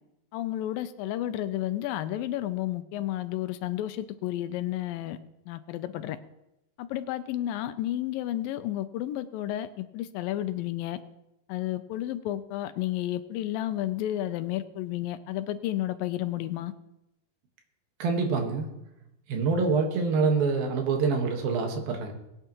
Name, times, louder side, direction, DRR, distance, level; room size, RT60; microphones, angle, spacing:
voice 1, 0.3-5.2 5.5-6.2 6.8-11.0 11.5-16.7, left 13 dB, 80° left, 11 dB, 2.3 m, -31 dB
voice 2, 18.0-18.7 19.3-22.1, right 4 dB, 80° right, 3 dB, 3.3 m, -26 dB
22.0 x 9.2 x 3.0 m, 0.89 s
omnidirectional pair, 4.1 m